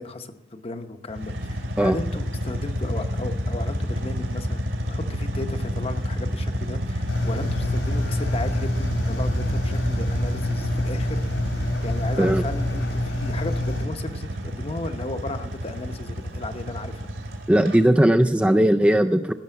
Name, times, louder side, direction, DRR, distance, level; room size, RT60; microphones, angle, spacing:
voice 1, 0.0-11.3 11.8-17.1, left 2 dB, 30° left, 8 dB, 0.8 m, -35 dB
sound 1, 1.1-17.8, equal, 75° right, 2.7 m, -29 dB
Engine, 7.1-13.9, left 1 dB, 80° left, 3.3 m, -27 dB
voice 2, 17.5-19.3, right 1 dB, 5° right, 5 dB, 0.3 m, -18 dB
16.5 x 6.7 x 7.8 m, 1.1 s
head